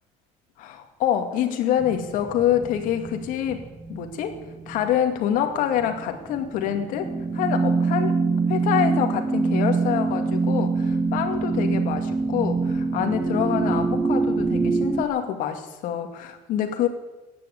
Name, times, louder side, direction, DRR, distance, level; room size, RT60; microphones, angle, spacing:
voice 1, 0.6-3.6 3.9-4.4 4.7-7.1 7.3-8.1 8.5-16.9, left 10 dB, 65° left, 5 dB, 2.3 m, -26 dB
sound 1, 1.8-5.0 5.4-15.0, right 4 dB, 10° right, 1.2 m, -25 dB
15.5 x 10.0 x 8.3 m, 1.1 s
cardioid pair, 140°, 15 cm